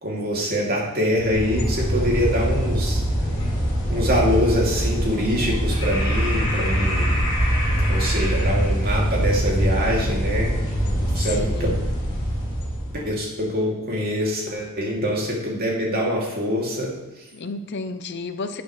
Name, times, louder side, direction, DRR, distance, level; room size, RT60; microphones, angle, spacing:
voice 1, 0.0-3.0 3.9-7.2 7.9-10.5 11.1-11.7 12.9-17.2, equal, 45° right, -3 dB, 2.7 m, -24 dB
sound 1, 1.1-13.0, equal, 20° left, 3.2 m, -23 dB
voice 2, 11.2-12.0 17.3-18.6, left 3 dB, 55° left, 8 dB, 0.7 m, -32 dB
11.0 x 8.7 x 3.3 m, 1.1 s
head